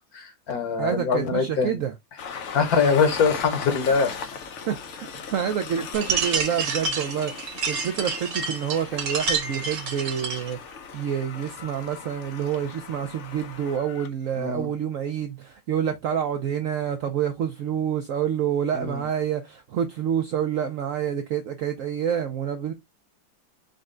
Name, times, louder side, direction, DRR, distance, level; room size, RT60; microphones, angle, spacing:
voice 1, 0.1-1.8 2.5-4.1 14.4-14.7 18.7-19.0, left 5 dB, 60° left, 1.1 m, -23 dB
voice 2, 0.8-1.9 4.7-22.7, right 9 dB, 85° right, 0.7 m, -28 dB
Train, 2.2-14.1, left 6 dB, 80° left, 0.6 m, -38 dB
sound 1, 5.9-10.5, right 4 dB, 70° right, 1.7 m, -28 dB
5.2 x 2.2 x 3.6 m
omnidirectional pair, 2.0 m